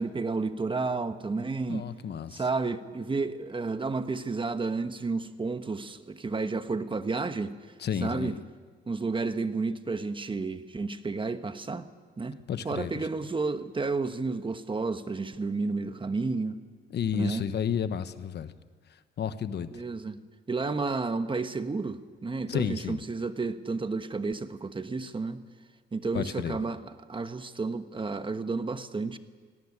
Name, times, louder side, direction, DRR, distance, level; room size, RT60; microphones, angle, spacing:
voice 1, 0.0-1.9 2.3-7.5 8.0-8.4 8.9-11.9 12.2-16.6 17.1-17.5 19.7-20.2 20.5-25.4 25.9-29.2, right 3 dB, 25° right, 10 dB, 1.2 m, -31 dB
voice 2, 1.7-2.4 7.8-8.3 12.5-12.9 16.9-18.5 19.2-19.8 22.5-23.0 26.1-26.6, left 8 dB, 60° left, 12 dB, 1.2 m, -31 dB
18.5 x 18.5 x 9.9 m, 1.5 s
cardioid pair, 90°, 20 cm